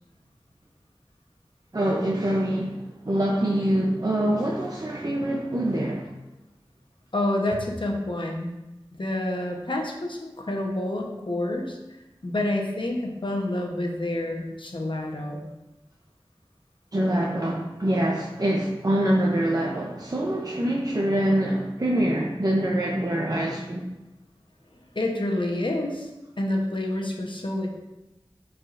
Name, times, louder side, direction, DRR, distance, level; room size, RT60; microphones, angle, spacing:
voice 1, 1.7-6.1 16.9-23.9, right 1 dB, 45° right, -2 dB, 0.7 m, -25 dB
voice 2, 7.1-8.5 9.0-11.8 12.2-15.5 24.9-26.1 26.4-27.7, left 1 dB, 60° left, 1 dB, 1.0 m, -28 dB
7.6 x 4.8 x 2.6 m, 1.0 s
wide cardioid pair, 50°, 9 cm